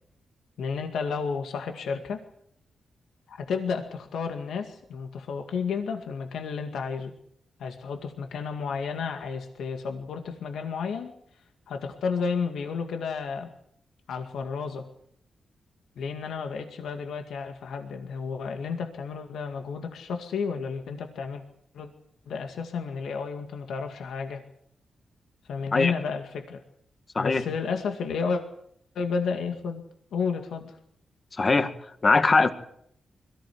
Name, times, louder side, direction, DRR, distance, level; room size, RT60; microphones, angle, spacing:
voice 1, 0.6-2.2 3.3-7.1 7.6-11.1 11.7-13.5 14.1-14.9 16.0-21.4 21.7-21.9 22.3-24.4 25.5-26.6 27.2-28.4 29.0-29.8 30.1-30.7, left 5 dB, 85° left, 5 dB, 2.1 m, -32 dB
voice 2, 31.4-31.7 32.0-32.5, left 3 dB, 40° left, 9 dB, 2.0 m, -20 dB
22.0 x 15.0 x 9.5 m, 0.71 s
cardioid pair, 75°, 0 cm